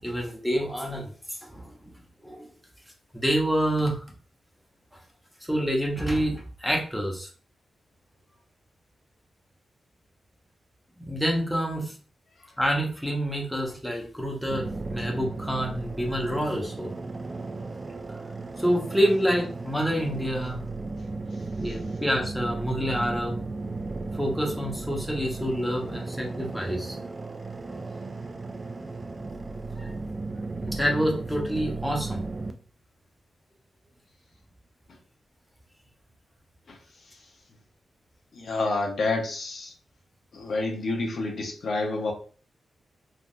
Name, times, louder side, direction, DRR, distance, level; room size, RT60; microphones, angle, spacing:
voice 1, 0.0-1.9 2.2-2.5 3.1-4.0 5.4-7.3 11.0-12.0 12.6-16.9 18.6-20.6 21.6-23.4 24.1-27.0 29.7-29.9 30.6-32.2, equal, ahead, 0.7 m, -27 dB
sound 1, 14.5-32.5, right 3 dB, 25° right, 0.3 m, -35 dB
voice 2, 38.3-39.7 40.3-42.1, left 3 dB, 60° left, 0.7 m, -28 dB
3.4 x 2.4 x 2.5 m
wide cardioid pair, 145°, 0 cm